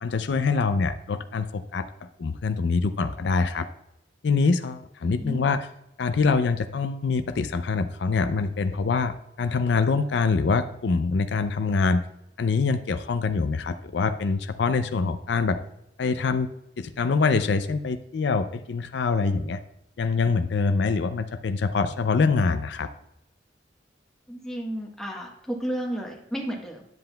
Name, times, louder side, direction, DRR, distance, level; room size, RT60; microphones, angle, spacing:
voice 1, 0.0-1.9 2.2-3.7 4.2-5.6 6.0-12.0 12.4-15.6 16.0-16.5 16.8-19.6 20.0-22.9, left 4 dB, 70° left, 10 dB, 0.4 m, -24 dB
voice 2, 5.2-5.5 24.3-26.9, equal, 5° left, 0 dB, 1.1 m, -32 dB
10.5 x 7.5 x 2.2 m, 0.86 s
head